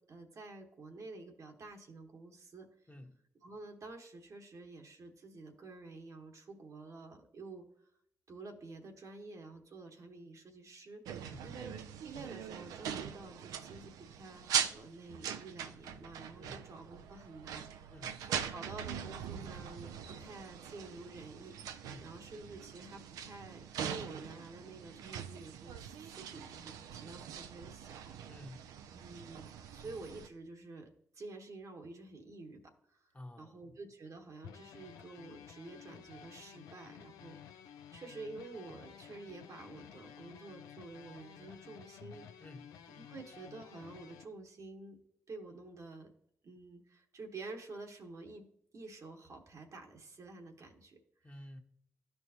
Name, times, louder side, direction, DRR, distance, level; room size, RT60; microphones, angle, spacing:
voice 1, 0.0-2.9 3.4-7.6 8.3-11.0 11.4-11.7 12.0-17.9 18.2-28.4 28.9-30.9 31.1-33.1 33.4-37.4 37.9-42.4 42.9-45.0 45.3-46.1 46.4-48.5 48.7-51.3, right 3 dB, 60° right, 1.1 m, -50 dB
voice 2, 2.9-3.2 11.2-11.5 16.4-16.6 17.9-18.2 21.8-22.1 28.3-28.7 33.1-33.6 42.4-42.8 51.2-51.6, left 1 dB, 25° left, 1.2 m, -51 dB
sound 1, 11.1-30.3, right 8 dB, 85° right, 0.4 m, -42 dB
sound 2, 34.4-44.2, left 8 dB, 90° left, 0.4 m, -53 dB
12.5 x 4.5 x 2.8 m
supercardioid pair, 40°, 6 cm